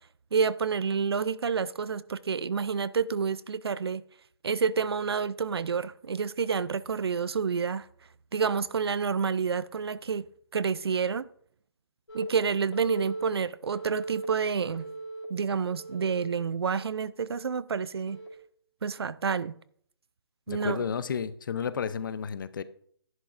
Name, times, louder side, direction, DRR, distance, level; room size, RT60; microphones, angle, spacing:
voice 1, 0.3-4.0 4.4-7.9 8.3-10.2 10.5-11.2 12.1-14.9 15.3-18.2 18.8-19.5 20.5-20.8, right 6 dB, 75° right, 0.5 m, -29 dB
Telephone, 12.1-12.2 12.7-13.2 13.7-14.2 14.7-15.2 15.7-16.3 16.7-17.1 18.1-18.3, right 3 dB, 85° left, 2.7 m, -39 dB
voice 2, 20.5-22.6, left 7 dB, 55° left, 0.7 m, -32 dB
11.5 x 11.0 x 2.6 m
hypercardioid pair, 150°, 13 cm